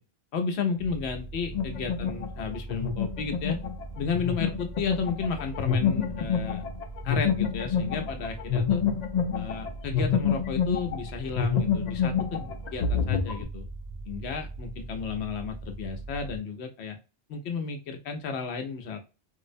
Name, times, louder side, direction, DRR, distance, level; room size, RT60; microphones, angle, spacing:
voice 1, 0.3-3.6 4.0-6.6 7.0-8.8 9.4-13.7 14.1-17.0 17.3-19.0, left 5 dB, 80° left, 5 dB, 0.9 m, -33 dB
sound 1, 0.8-16.4, right 3 dB, 45° right, 0.4 m, -41 dB
sound 2, 1.5-11.1 11.4-13.4, left 7 dB, 55° left, 0.5 m, -28 dB
2.6 x 2.0 x 2.4 m, 0.30 s
omnidirectional pair, 1.1 m